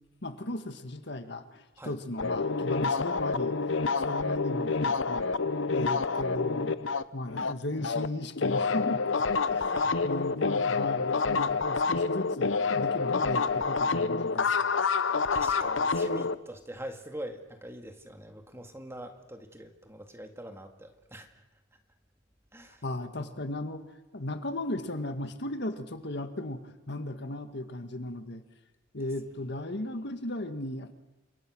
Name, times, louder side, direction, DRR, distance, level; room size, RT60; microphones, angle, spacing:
voice 1, 0.2-5.3 5.7-6.7 7.1-14.6 22.8-23.8 24.1-28.4 28.9-30.9, left 1 dB, 60° left, 8 dB, 1.9 m, -36 dB
sound 1, 2.2-8.1 8.4-16.4, left 4 dB, 75° left, 0.9 m, -28 dB
voice 2, 9.7-10.1 10.5-10.7 15.3-21.3 22.5-22.8, right 1 dB, 15° right, 5 dB, 2.0 m, -44 dB
29.0 x 25.5 x 6.4 m, 1.0 s
head